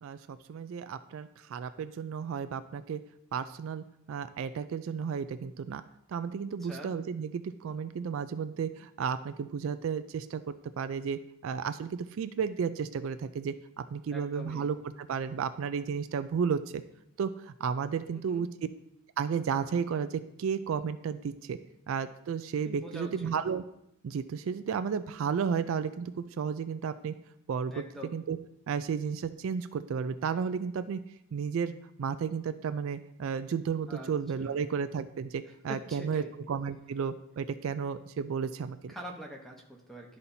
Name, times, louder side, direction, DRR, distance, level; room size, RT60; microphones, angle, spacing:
voice 1, 0.0-3.0 3.3-5.8 6.1-13.5 13.9-16.8 17.2-18.5 19.2-21.6 21.9-23.6 24.0-27.1 27.5-27.7 28.1-28.4 28.7-31.0 31.3-31.7 32.0-38.9, right 6 dB, 65° right, 11 dB, 0.3 m, -33 dB
voice 2, 6.6-6.9 14.1-14.7 18.1-18.5 22.6-23.3 27.7-28.1 33.9-34.1 34.4-34.6 35.7-36.3 38.9-40.2, equal, ahead, 0 dB, 0.8 m, -44 dB
12.0 x 4.2 x 2.7 m, 0.77 s
head